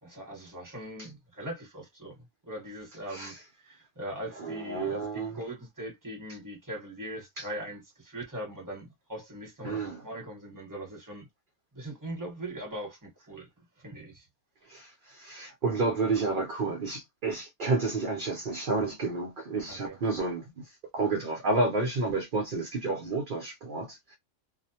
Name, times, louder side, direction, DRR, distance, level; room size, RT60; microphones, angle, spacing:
voice 1, 0.0-2.1 2.4-11.3 11.7-14.3 19.7-20.0, right 1 dB, 15° right, 1.1 m, -41 dB
voice 2, 3.1-3.4 4.4-5.4 7.4-7.5 9.6-10.0 14.6-24.2, right 3 dB, 55° right, 0.6 m, -30 dB
2.4 x 2.1 x 2.7 m
omnidirectional pair, 1.4 m